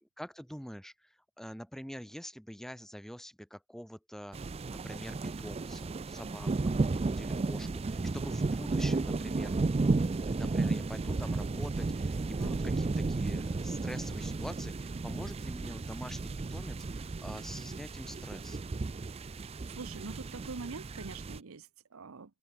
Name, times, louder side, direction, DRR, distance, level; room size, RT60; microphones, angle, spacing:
voice 1, 0.0-4.4 4.8-9.6 10.3-18.6, equal, ahead, 1.4 m, -45 dB
sound 1, 4.3-21.4, right 3 dB, 30° right, 0.4 m, -33 dB
voice 2, 12.4-12.8 19.1-19.4 19.7-22.4, right 4 dB, 75° right, 0.8 m, -45 dB
open air
head